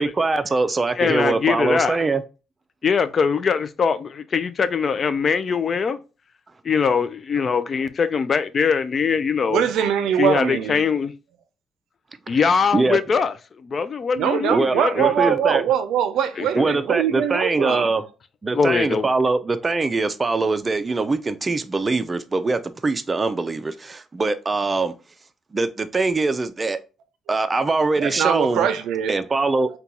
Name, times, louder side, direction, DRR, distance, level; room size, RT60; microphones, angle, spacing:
voice 1, 0.0-2.2 12.3-12.4 12.7-13.0 14.5-15.6 16.5-18.0 18.4-24.9 25.5-26.8 27.3-28.7 29.1-29.7, right 3 dB, 30° right, 0.4 m, -22 dB
voice 2, 1.0-2.0 2.8-6.0 6.6-9.6 10.2-11.1 12.3-13.3 13.6-15.3 16.4-16.5 18.5-19.1, left 6 dB, 45° left, 0.3 m, -22 dB
voice 3, 9.5-10.8 14.1-18.0 28.0-29.2, right 9 dB, 85° right, 0.4 m, -22 dB
3.8 x 2.3 x 2.8 m
cardioid pair, 90°, 0 cm